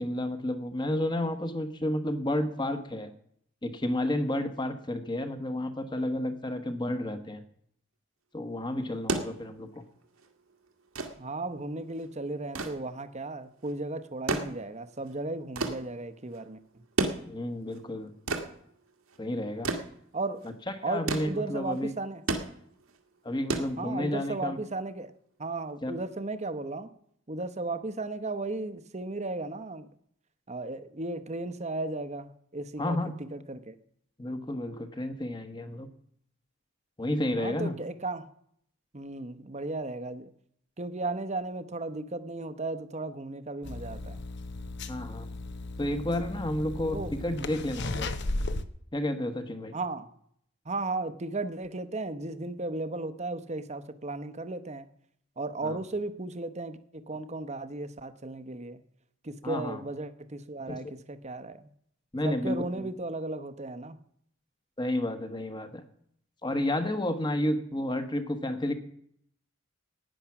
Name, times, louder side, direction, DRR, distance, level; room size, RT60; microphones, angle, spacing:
voice 1, 0.0-3.1 3.6-7.4 8.3-9.8 17.3-18.1 19.2-19.7 20.9-21.9 23.2-24.6 25.8-25.9 32.8-33.1 34.2-35.9 37.0-37.8 44.9-45.3 45.8-48.1 48.9-49.7 55.6-55.8 59.4-59.8 60.7-60.8 62.1-62.9 64.8-65.8 66.4-68.7, left 1 dB, 20° left, 9 dB, 1.2 m, -31 dB
sound 1, 8.8-24.4 25.6-25.7, right 2 dB, 90° right, 1.8 m, -35 dB
voice 2, 11.2-16.8 20.1-20.4 20.8-22.2 23.8-25.1 25.4-26.9 27.3-29.9 30.5-33.8 37.4-38.3 38.9-40.3 40.8-44.2 46.9-47.1 49.7-50.1 50.6-54.9 55.4-58.8 59.2-61.7 62.2-64.0, right 2 dB, 30° right, 12 dB, 0.9 m, -35 dB
sound 2, 43.6-48.6, left 2 dB, 55° left, 0.9 m, -35 dB
15.5 x 9.9 x 5.9 m, 0.69 s
head